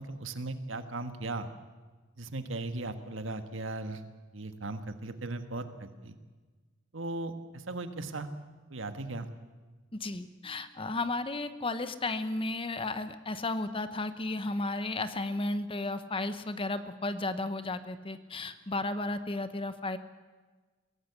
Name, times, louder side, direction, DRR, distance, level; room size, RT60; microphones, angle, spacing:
voice 1, 0.0-1.5 2.2-4.0 4.3-6.2 6.9-8.3 8.7-9.3, right 2 dB, 75° right, 9 dB, 1.6 m, -37 dB
voice 2, 9.9-20.0, left 2 dB, 25° left, 12 dB, 1.0 m, -34 dB
22.5 x 17.0 x 8.2 m, 1.3 s
head